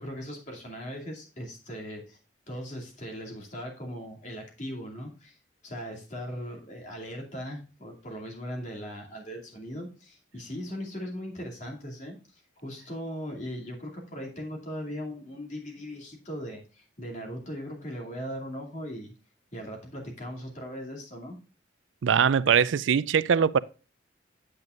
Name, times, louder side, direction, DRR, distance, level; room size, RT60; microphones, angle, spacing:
voice 1, 0.0-2.2 2.5-5.4 5.6-19.1 19.5-21.4, equal, 40° left, 2.6 m, -39 dB
voice 2, 22.0-23.6, right 7 dB, 85° right, 0.4 m, -22 dB
8.8 x 8.0 x 2.5 m
head